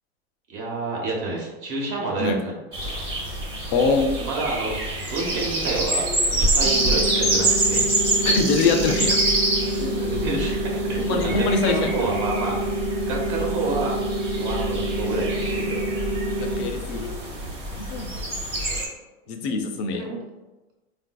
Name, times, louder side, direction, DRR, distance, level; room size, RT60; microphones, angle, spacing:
voice 1, 0.5-2.6 2.8-3.0 4.2-4.8 5.1-7.9 8.2-8.3 10.0-12.6 13.0-14.0 14.3-15.8 18.5-18.6 20.0-20.2, right 3 dB, 45° right, -2 dB, 0.9 m, -29 dB
sound 1, 2.7-18.9, right 1 dB, 15° right, 0.9 m, -26 dB
voice 2, 3.7-4.2 8.2-9.2 9.8-10.0 11.0-12.1 16.4-17.1 17.8-18.1 19.3-20.0, left 4 dB, 45° left, 5 dB, 0.5 m, -24 dB
sound 2, 6.6-16.6, right 1 dB, 80° right, 0.8 m, -28 dB
3.9 x 2.5 x 2.2 m, 1.1 s
supercardioid pair, 130°, 33 cm